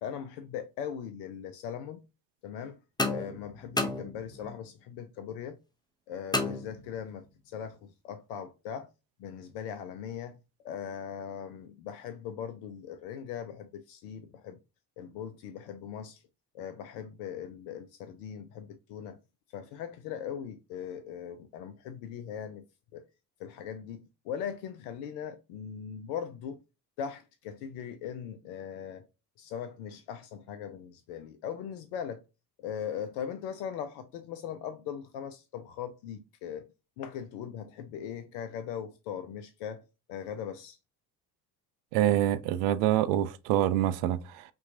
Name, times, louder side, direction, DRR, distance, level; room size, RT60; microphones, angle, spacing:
voice 1, 0.0-2.0 2.4-2.8 3.1-5.6 6.1-8.9 9.2-10.4 10.6-14.6 15.0-16.2 16.5-19.2 19.5-22.6 22.9-23.0 23.4-26.6 27.0-29.0 29.4-32.2 32.6-36.6 37.0-39.8 40.1-40.8, left 8 dB, 60° left, 0.6 m, -39 dB
sound 1, 3.0-4.6 6.3-7.3, left 2 dB, 10° left, 0.6 m, -33 dB
voice 2, 41.9-44.4, right 12 dB, 60° right, 0.5 m, -26 dB
5.6 x 2.3 x 2.6 m
figure-of-eight pair, 45°, 49 cm